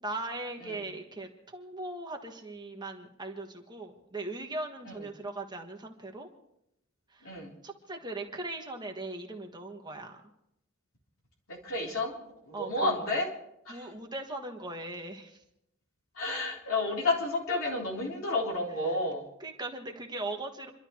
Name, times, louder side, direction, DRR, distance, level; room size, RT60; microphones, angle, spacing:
voice 1, 0.0-6.3 7.1-7.4 7.6-10.2 12.5-13.1 13.7-15.4 18.9-19.0 19.4-20.7, right 2 dB, 20° right, 2 dB, 1.5 m, -39 dB
voice 2, 11.6-12.2 12.5-13.3 13.7-13.9 16.2-19.2, left 2 dB, 65° left, -2 dB, 3.9 m, -31 dB
28.5 x 12.0 x 3.2 m, 0.80 s
head